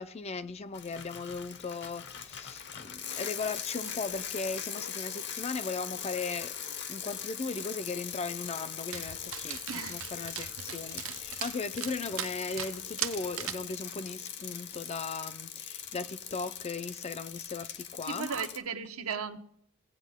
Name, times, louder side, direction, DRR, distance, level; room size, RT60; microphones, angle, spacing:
voice 1, 0.0-6.5 6.9-18.3, left 4 dB, 30° left, 0.5 m, -37 dB
Bicycle, 0.7-18.6, left 8 dB, 50° left, 0.9 m, -41 dB
Dog, 8.9-13.7, right 12 dB, 65° right, 0.5 m, -40 dB
voice 2, 9.7-10.0 18.1-19.4, right 6 dB, 80° right, 1.0 m, -35 dB
17.5 x 8.3 x 3.6 m
head